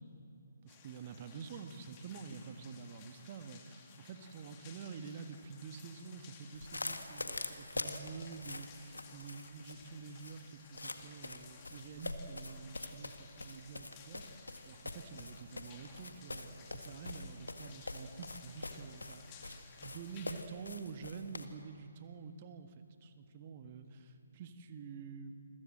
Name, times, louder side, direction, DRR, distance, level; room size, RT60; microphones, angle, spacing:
voice 1, 0.6-25.3, right 5 dB, 30° right, 8 dB, 1.6 m, -48 dB
sound 1, 0.7-20.4, left 6 dB, 25° left, 2.4 m, -58 dB
sound 2, 6.5-21.5, left 2 dB, 70° left, 1.8 m, -45 dB
28.5 x 22.5 x 7.7 m, 2.5 s
figure-of-eight pair, 140°, 0 cm